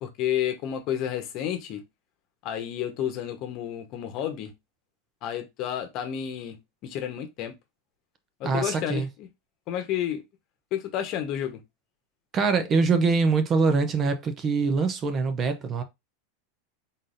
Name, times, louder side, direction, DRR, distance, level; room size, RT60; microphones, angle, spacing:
voice 1, 0.0-1.8 2.4-4.5 5.2-6.6 6.8-7.5 8.4-9.3 9.7-10.2 10.7-11.6, left 10 dB, 45° left, 1.0 m, -30 dB
voice 2, 8.4-9.1 12.3-15.8, right 4 dB, 30° right, 0.7 m, -24 dB
3.9 x 3.9 x 2.5 m
supercardioid pair, 130°, 0 cm